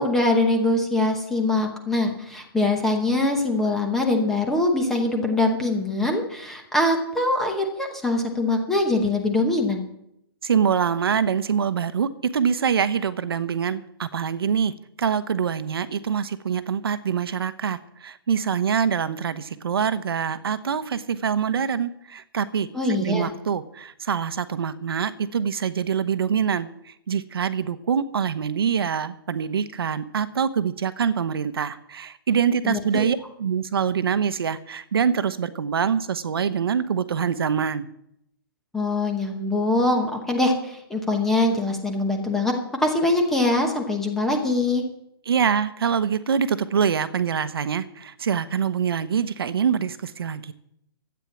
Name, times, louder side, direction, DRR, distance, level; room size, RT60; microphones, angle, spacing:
voice 1, 0.0-9.8 22.7-23.3 32.6-33.1 38.7-42.5 42.8-44.8, left 2 dB, 5° left, 2 dB, 0.9 m, -23 dB
voice 2, 10.4-37.9 45.3-50.5, right 7 dB, 70° right, 13 dB, 1.0 m, -25 dB
13.0 x 9.1 x 7.2 m, 0.79 s
hypercardioid pair, 175°, 13 cm